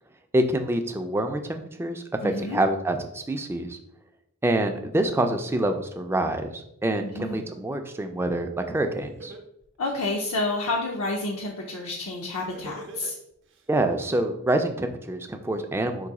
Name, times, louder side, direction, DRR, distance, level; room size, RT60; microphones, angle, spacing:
voice 1, 0.3-3.8 4.4-9.3 13.7-16.1, right 1 dB, 10° right, 5 dB, 0.3 m, -26 dB
voice 2, 2.2-2.6 7.0-7.4 9.8-13.2, left 2 dB, 75° left, 0 dB, 0.6 m, -29 dB
Laughter, 9.2-10.7 12.4-13.6, right 2 dB, 55° right, 0.6 m, -42 dB
3.9 x 2.6 x 4.7 m, 0.79 s
head